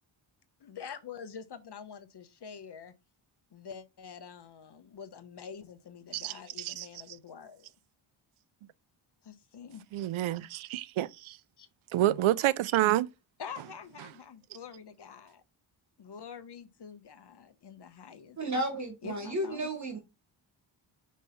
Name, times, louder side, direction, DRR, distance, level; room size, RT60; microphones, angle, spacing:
voice 1, 0.6-2.9 3.5-7.7 9.2-9.8 11.6-11.7 13.4-15.4 16.0-18.4 19.0-19.7, left 7 dB, 55° left, 1.0 m, -46 dB
voice 2, 6.1-6.9 9.9-11.4 11.9-13.1, right 14 dB, 75° right, 0.6 m, -28 dB
voice 3, 18.4-20.0, right 1 dB, 35° right, 1.6 m, -33 dB
5.4 x 3.2 x 5.5 m
cardioid pair, 80°, 49 cm